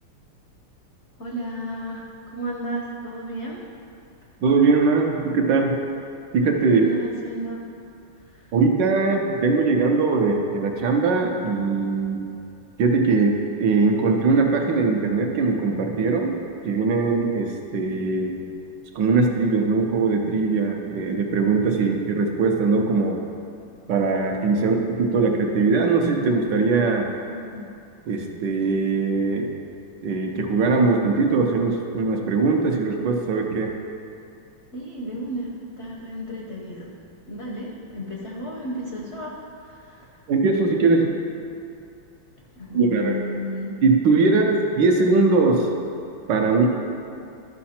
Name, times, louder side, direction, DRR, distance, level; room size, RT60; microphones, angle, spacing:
voice 1, 1.2-2.1 2.3-3.6 6.7-7.6 8.3-8.5 24.6-24.7 27.2-27.6 34.7-36.9 37.3-40.1 42.5-43.8, right 1 dB, 55° left, -3 dB, 0.7 m, -33 dB
voice 2, 4.4-5.8 6.3-6.9 8.5-12.2 12.8-16.4 16.6-18.4 18.9-23.2 23.9-27.1 28.1-29.5 30.0-33.7 40.3-41.0 42.7-43.1 43.8-45.7 46.3-46.7, right 4 dB, 65° right, 2 dB, 1.3 m, -21 dB
12.5 x 5.6 x 4.3 m, 2.6 s
omnidirectional pair, 2.4 m